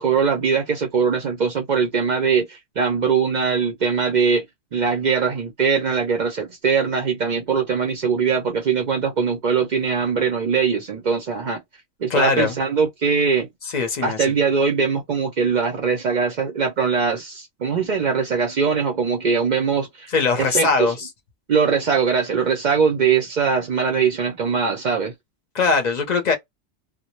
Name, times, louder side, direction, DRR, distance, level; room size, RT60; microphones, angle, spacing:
voice 1, 0.0-4.4 4.7-11.6 12.0-13.5 14.0-20.1 20.4-20.9 21.5-25.1, right 6 dB, 60° right, 0.4 m, -21 dB
voice 2, 12.1-12.6 13.7-14.3 20.1-21.1 25.5-26.3, left 4 dB, 45° left, 0.6 m, -21 dB
2.1 x 2.0 x 2.9 m
omnidirectional pair, 1.3 m